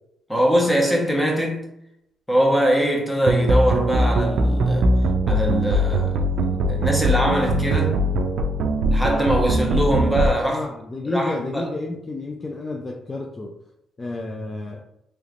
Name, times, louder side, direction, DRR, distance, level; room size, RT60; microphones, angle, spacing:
voice 1, 0.3-1.7 2.3-4.9 5.3-8.0 8.9-10.7 11.0-11.7, equal, 5° left, 0.9 m, -22 dB
sound 1, 3.3-10.3, right 1 dB, 70° right, 0.4 m, -21 dB
voice 2, 10.5-13.5 14.0-14.8, left 2 dB, 30° left, 0.4 m, -30 dB
3.2 x 3.1 x 2.5 m
cardioid pair, 90°, 0 cm